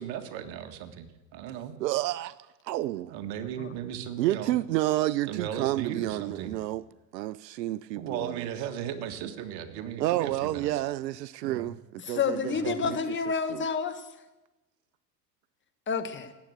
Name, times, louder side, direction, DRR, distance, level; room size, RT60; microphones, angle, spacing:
voice 1, 0.0-1.7 3.1-4.6 5.3-6.5 8.0-10.8 11.4-11.7 12.5-12.9, right 9 dB, 50° right, 1.8 m, -36 dB
voice 2, 1.8-2.3 2.7-3.0 4.2-6.8 7.1-8.5 10.0-13.0 13.5-13.6, right 15 dB, 75° right, 0.6 m, -30 dB
voice 3, 12.0-14.1 15.9-16.3, left 5 dB, 20° left, 1.3 m, -29 dB
18.5 x 8.4 x 7.8 m
hypercardioid pair, 105°, 50 cm